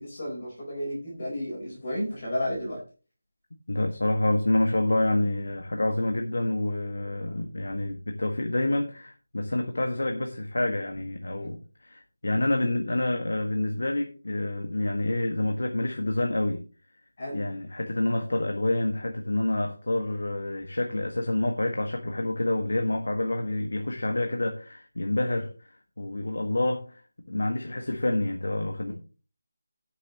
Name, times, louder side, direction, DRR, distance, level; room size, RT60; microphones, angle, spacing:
voice 1, 0.0-2.8 11.4-11.5 17.2-17.4, equal, 30° left, 4.0 m, -32 dB
voice 2, 3.7-16.7 17.3-27.0 27.3-28.9, left 1 dB, 75° left, 1.5 m, -28 dB
18.0 x 6.6 x 3.0 m
figure-of-eight pair, 180°, 0 cm